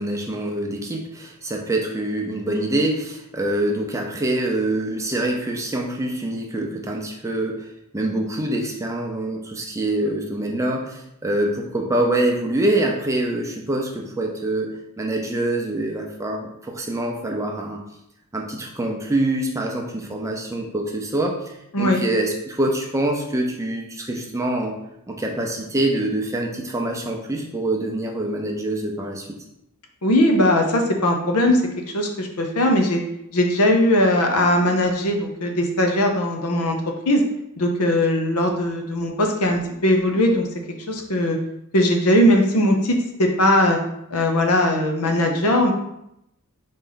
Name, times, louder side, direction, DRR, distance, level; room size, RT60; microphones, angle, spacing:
voice 1, 0.0-7.7 7.9-14.7 15.0-17.8 18.3-24.8 25.1-29.4, right 1 dB, 15° right, 0 dB, 0.6 m, -25 dB
voice 2, 30.0-31.6 31.9-33.0 33.3-37.2 37.6-40.5 40.9-41.4 41.7-43.8 44.1-45.7, left 1 dB, 75° left, 3 dB, 0.7 m, -19 dB
4.2 x 3.1 x 3.9 m, 0.81 s
head